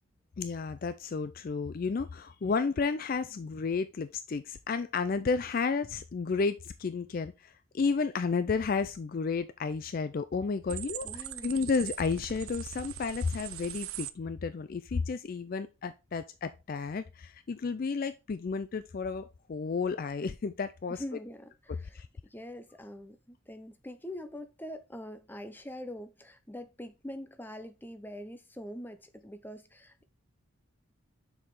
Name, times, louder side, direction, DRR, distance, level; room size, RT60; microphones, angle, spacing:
voice 1, 0.4-21.0 21.9-22.1, left 4 dB, 40° left, 0.3 m, -32 dB
sound 1, 10.7-14.1, right 13 dB, 75° right, 0.5 m, -41 dB
voice 2, 11.0-11.6 20.9-30.1, left 1 dB, 10° left, 0.7 m, -44 dB
6.5 x 4.8 x 3.6 m
head